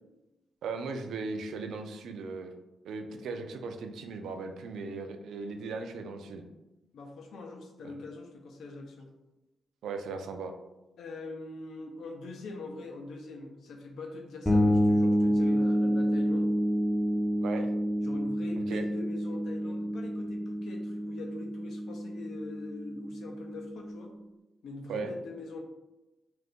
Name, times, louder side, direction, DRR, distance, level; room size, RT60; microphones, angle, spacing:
voice 1, 0.6-2.5 2.8-6.4 7.8-8.0 9.8-10.5 17.4-17.7 18.7-18.8 24.9-25.1, right 4 dB, 80° right, 5 dB, 0.3 m, -37 dB
voice 2, 6.9-9.1 11.0-16.5 18.0-24.2 24.6-25.6, left 3 dB, 75° left, 2 dB, 0.5 m, -43 dB
sound 1, 14.5-24.1, equal, ahead, 0.4 m, -28 dB
2.5 x 2.5 x 3.5 m, 0.99 s
wide cardioid pair, 170°, 0 cm